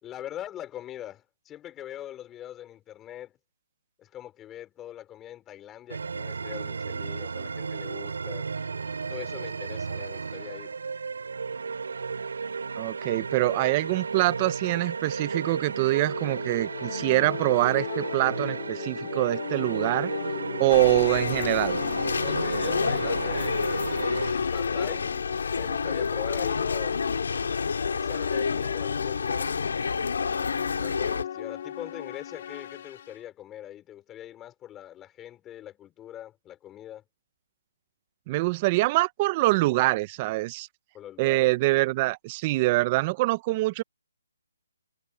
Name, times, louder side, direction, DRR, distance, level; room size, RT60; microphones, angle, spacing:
voice 1, 0.0-3.3 4.0-8.5 9.1-10.7 22.2-23.8 24.3-25.1 25.5-27.0 27.9-29.6 30.8-37.0 40.9-41.5, left 12 dB, 10° left, 4.5 m, -42 dB
sound 1, 5.9-24.3, right 5 dB, 70° right, 3.6 m, -34 dB
voice 2, 12.8-20.1 20.6-21.8 38.3-40.7 41.2-43.8, right 20 dB, 20° right, 0.4 m, -24 dB
sound 2, 15.9-33.2, left 9 dB, 30° left, 0.7 m, -37 dB
sound 3, 20.7-31.2, left 5 dB, 65° left, 3.7 m, -29 dB
hypercardioid pair, 175°, 0 cm